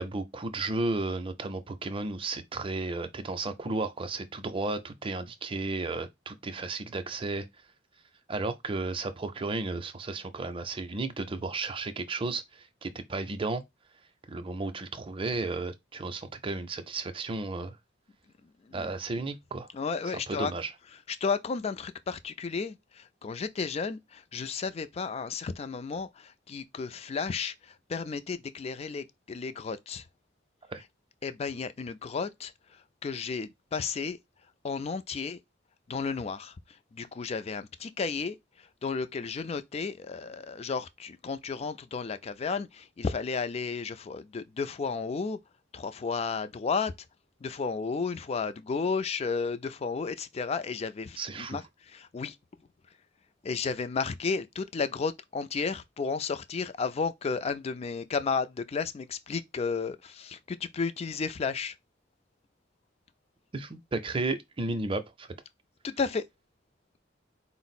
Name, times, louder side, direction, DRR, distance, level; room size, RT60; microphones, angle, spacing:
voice 1, 0.0-7.5 8.3-13.6 14.3-17.8 18.7-19.7 20.1-20.7 30.7-30.8 51.2-51.6 63.5-65.3, right 3 dB, 30° right, 0.5 m, -33 dB
voice 2, 19.7-20.5 21.1-30.1 31.2-32.5 33.0-34.2 34.6-35.4 35.9-36.5 36.9-45.4 45.7-46.9 47.4-52.4 53.4-61.7 65.8-66.3, left 5 dB, 35° left, 0.4 m, -33 dB
4.4 x 2.0 x 4.1 m
head